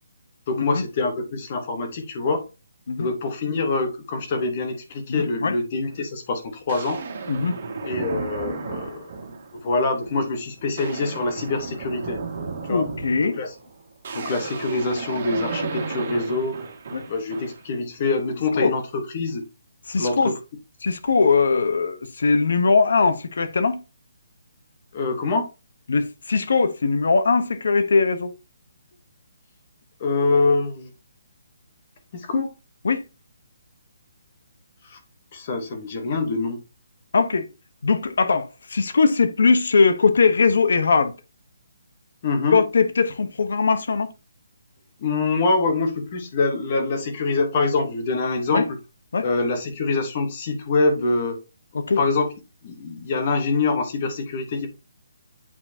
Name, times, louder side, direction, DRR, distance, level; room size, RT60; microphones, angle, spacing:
voice 1, 0.5-2.4 3.0-7.0 7.8-9.1 9.6-12.2 12.7-12.9 13.2-13.5 14.1-16.6 17.1-19.4 20.0-20.4 24.9-25.5 30.0-30.9 32.1-32.5 34.9-35.0 35.3-36.6 42.2-42.6 45.0-48.8 49.2-51.4 52.0-52.3 52.6-54.7, left 3 dB, 30° left, 1.1 m, -25 dB
voice 2, 5.1-5.6 7.3-7.5 12.7-13.4 16.9-17.0 18.5-18.7 19.9-20.3 20.8-23.8 25.9-28.3 32.8-33.0 37.1-37.5 37.8-41.1 42.5-44.1 48.5-48.7 49.1-49.3 51.7-52.0, left 4 dB, 60° left, 1.0 m, -20 dB
sound 1, 5.8-6.0 6.7-9.6 10.0-10.3 10.6-17.7, right 4 dB, 35° right, 1.9 m, -34 dB
8.5 x 4.5 x 2.8 m
hypercardioid pair, 175°, 0 cm